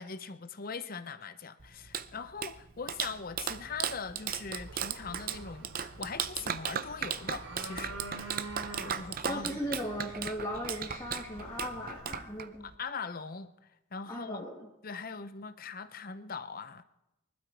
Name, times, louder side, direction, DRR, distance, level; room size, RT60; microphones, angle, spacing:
voice 1, 0.0-8.5 8.8-9.6 12.6-13.5 13.9-14.4 14.8-16.8, left 5 dB, 40° left, 0.7 m, -41 dB
Clapping, 1.6-12.8, right 8 dB, 40° right, 0.6 m, -37 dB
sound 1, 4.6-12.0, right 2 dB, 75° right, 4.0 m, -47 dB
voice 2, 9.2-12.7 14.1-14.7, equal, 15° left, 2.0 m, -37 dB
23.5 x 12.0 x 4.7 m
head